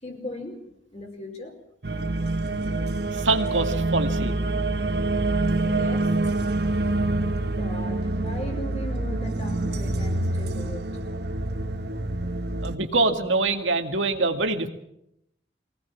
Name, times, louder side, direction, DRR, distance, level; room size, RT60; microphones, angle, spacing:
voice 1, 0.0-1.5 5.6-6.1 7.5-11.0, equal, 35° left, 2 dB, 4.9 m, -37 dB
sound 1, 1.8-12.8, right 2 dB, 60° right, 1.2 m, -26 dB
voice 2, 3.1-4.3 12.6-14.7, right 3 dB, 90° right, 5 dB, 2.2 m, -24 dB
24.0 x 18.0 x 7.4 m, 0.79 s
head